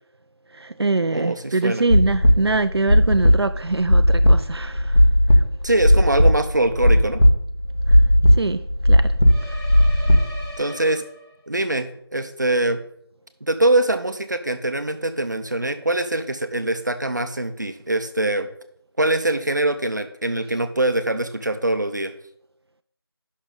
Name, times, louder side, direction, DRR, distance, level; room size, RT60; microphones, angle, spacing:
voice 1, 0.5-5.0 5.3-5.4 7.9-8.0 8.3-9.2 9.4-10.2, right 3 dB, 75° right, 0.5 m, -24 dB
voice 2, 1.1-1.8 5.6-7.2 10.6-11.0 11.5-12.8 13.4-18.5 19.0-22.1, right 2 dB, 45° right, 0.8 m, -23 dB
sound 1, 1.9-10.5, equal, 65° left, 1.6 m, -16 dB
sound 2, 9.2-11.6, equal, 5° right, 1.1 m, -39 dB
11.0 x 6.3 x 3.9 m
figure-of-eight pair, 180°, 14 cm